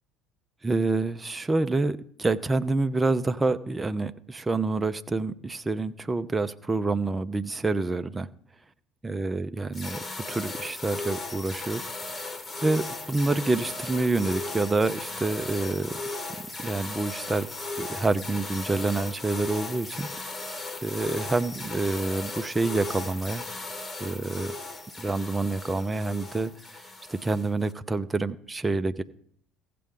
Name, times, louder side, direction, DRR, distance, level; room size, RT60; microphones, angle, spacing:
voice 1, 0.6-8.3 9.0-16.0 16.6-17.5 17.8-23.4 24.0-24.5 25.0-29.0, right 3 dB, 15° right, 8 dB, 0.6 m, -28 dB
sound 1, 9.7-27.7, left 2 dB, 30° left, 1.4 m, -37 dB
16.5 x 7.6 x 3.7 m, 0.63 s
hypercardioid pair, 65°, 0 cm